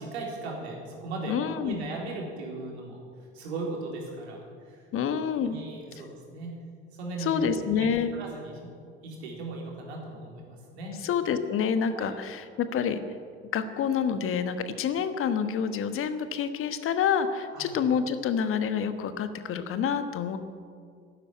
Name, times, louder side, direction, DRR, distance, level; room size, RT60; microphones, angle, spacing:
voice 1, 0.0-1.4 1.6-3.0 3.3-4.8 5.4-6.6 6.9-8.7 9.0-11.0 11.9-12.1 17.5-17.7, right 2 dB, 65° right, -1 dB, 4.0 m, -37 dB
voice 2, 1.3-1.8 4.9-5.5 7.2-8.1 11.0-13.0 13.5-20.4, left 7 dB, 40° left, 10 dB, 1.3 m, -28 dB
12.0 x 12.0 x 9.3 m, 2.2 s
figure-of-eight pair, 65°, 34 cm